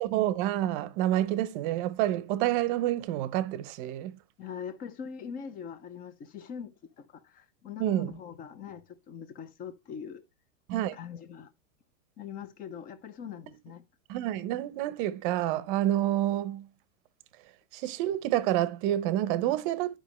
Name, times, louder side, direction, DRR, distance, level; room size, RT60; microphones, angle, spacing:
voice 1, 0.0-4.2 7.8-8.1 10.7-11.0 14.1-16.7 17.7-20.0, right 13 dB, 40° right, 0.8 m, -28 dB
voice 2, 4.4-10.2 10.9-11.5 12.2-13.8, left 7 dB, 20° left, 0.7 m, -42 dB
11.0 x 5.2 x 3.1 m
supercardioid pair, 155°, 42 cm